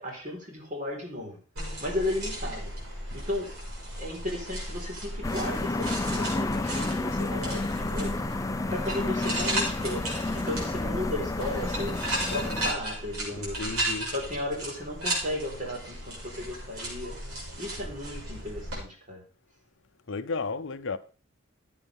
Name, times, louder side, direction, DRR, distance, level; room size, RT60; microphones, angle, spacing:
voice 1, 0.0-1.4 1.8-2.7 3.1-3.5 4.0-8.2 8.7-10.0 10.3-13.7 14.1-17.1 17.6-19.2, left 1 dB, 40° right, 4.4 m, -35 dB
sound 1, 1.6-18.8, right 1 dB, 90° right, 5.8 m, -35 dB
sound 2, 5.2-12.7, left 2 dB, 15° left, 0.5 m, -31 dB
voice 2, 13.3-14.1 20.1-21.0, left 4 dB, 60° left, 0.7 m, -33 dB
13.5 x 8.8 x 3.6 m
head